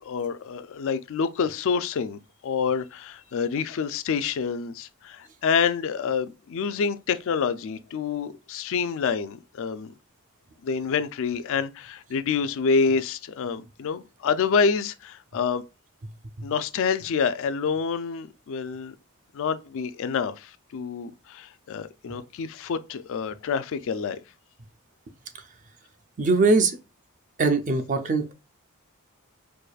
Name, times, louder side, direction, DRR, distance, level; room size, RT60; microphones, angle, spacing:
voice 1, 0.0-9.9 10.6-15.6 16.4-18.9 19.3-24.2, left 5 dB, 60° left, 0.4 m, -27 dB
voice 2, 26.2-26.8 27.4-28.3, right 3 dB, 35° right, 0.5 m, -22 dB
4.7 x 2.5 x 2.3 m
head